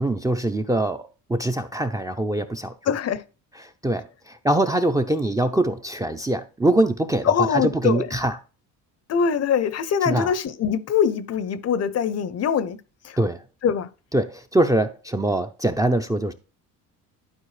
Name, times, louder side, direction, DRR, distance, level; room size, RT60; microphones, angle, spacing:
voice 1, 0.0-2.7 3.6-8.4 10.0-10.3 13.2-13.4 14.1-16.3, right 1 dB, 10° right, 0.5 m, -23 dB
voice 2, 2.9-3.2 7.3-8.1 9.1-12.8 13.0-13.2 13.6-13.9, left 7 dB, 45° left, 0.6 m, -23 dB
11.5 x 4.5 x 3.2 m
supercardioid pair, 95°, 37 cm